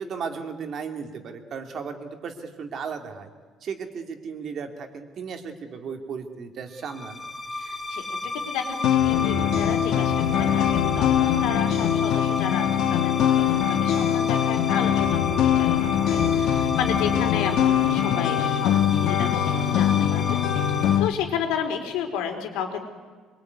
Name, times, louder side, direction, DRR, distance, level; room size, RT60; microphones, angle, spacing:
voice 1, 0.0-3.3 3.6-7.2 17.1-17.3, right 6 dB, 40° right, 5 dB, 2.7 m, -35 dB
sound 1, 6.8-21.0, left 2 dB, 10° left, 3.1 m, -33 dB
voice 2, 7.5-8.0 8.4-22.8, left 7 dB, 90° left, 5 dB, 4.3 m, -32 dB
sound 2, 8.8-21.1, left 10 dB, 60° left, 1.3 m, -22 dB
25.0 x 23.0 x 9.6 m, 1.5 s
cardioid pair, 165°, 0 cm